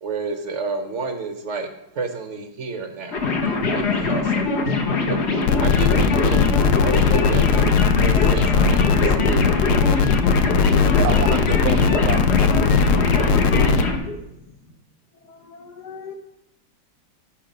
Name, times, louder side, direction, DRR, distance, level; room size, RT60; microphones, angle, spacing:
voice 1, 0.0-1.7 1.9-3.2 3.7-4.5 5.1-5.2 5.6-7.6 8.0-9.5, right 4 dB, 65° right, 0.7 m, -30 dB
sound 1, 3.1-14.0, left 4 dB, 45° left, 0.9 m, -22 dB
sound 2, 5.4-13.8, left 5 dB, 80° left, 1.4 m, -19 dB
voice 2, 11.0-13.0, right 9 dB, 90° right, 1.5 m, -29 dB
voice 3, 15.3-16.1, left 4 dB, 60° left, 1.3 m, -38 dB
10.0 x 5.8 x 5.1 m
omnidirectional pair, 2.3 m